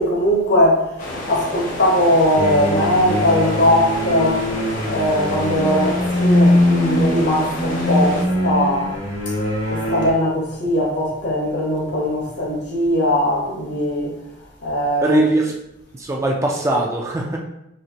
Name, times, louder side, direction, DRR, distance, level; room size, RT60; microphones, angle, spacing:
voice 1, 0.0-4.5 4.9-9.0 9.3-9.4 9.7-14.2 14.6-15.2, left 1 dB, 65° left, 1.1 m, -20 dB
sound 1, 1.0-8.3, left 1 dB, 45° left, 0.7 m, -30 dB
sound 2, 2.3-10.1, left 1 dB, 85° left, 1.4 m, -21 dB
voice 2, 15.0-15.5 15.9-17.4, right 2 dB, 15° right, 0.4 m, -20 dB
4.4 x 2.7 x 2.8 m
head